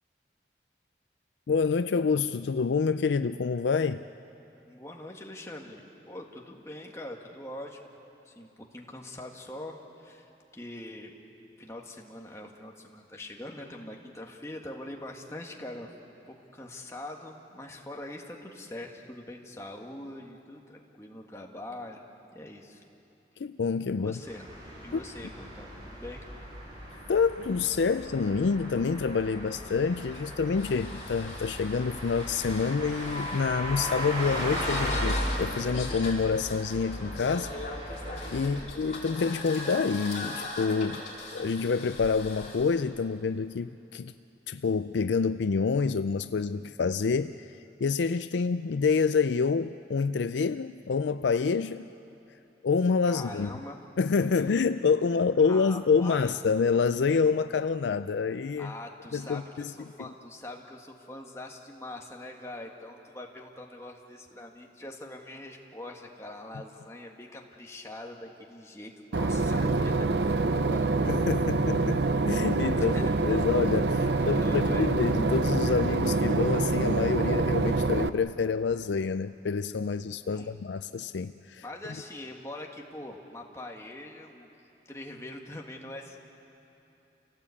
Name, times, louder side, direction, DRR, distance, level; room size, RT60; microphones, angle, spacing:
voice 1, 1.5-4.0 23.4-24.2 24.9-25.0 27.1-37.5 38.3-41.0 41.3-44.1 44.5-51.9 52.6-53.5 54.0-58.7 59.1-59.7 71.1-73.0 73.2-81.6, left 5 dB, 85° left, 11 dB, 0.4 m, -27 dB
voice 2, 4.7-7.8 8.3-11.1 11.6-15.9 16.3-22.0 22.3-22.8 24.0-24.5 24.8-26.2 38.4-38.7 53.1-53.8 55.4-56.3 58.6-70.9 72.8-73.5 74.0-74.9 80.3-80.6 81.6-84.5 84.9-86.2, left 1 dB, 15° left, 0 dB, 1.8 m, -43 dB
sound 1, 24.2-38.4, equal, 25° right, 6.8 m, -37 dB
sound 2, 29.0-42.7, left 2 dB, 40° left, 4.7 m, -39 dB
Boat Water vehicle / Engine, 69.1-78.1, right 3 dB, 75° right, 0.7 m, -26 dB
29.0 x 17.5 x 8.5 m, 2.9 s
head